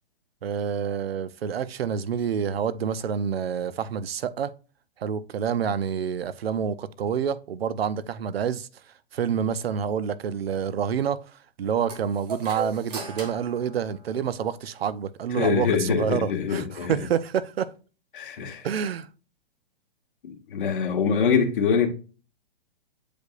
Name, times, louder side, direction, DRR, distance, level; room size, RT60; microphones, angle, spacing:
voice 1, 0.4-4.5 5.0-8.7 9.1-11.2 11.6-17.7 18.6-19.1, right 7 dB, 90° right, 0.8 m, -28 dB
sound 1, 11.9-14.6, right 4 dB, 45° right, 2.1 m, -38 dB
voice 2, 15.4-17.0 18.1-18.7 20.2-21.9, left 6 dB, 60° left, 1.7 m, -24 dB
8.1 x 5.1 x 2.5 m
hypercardioid pair, 160°, 29 cm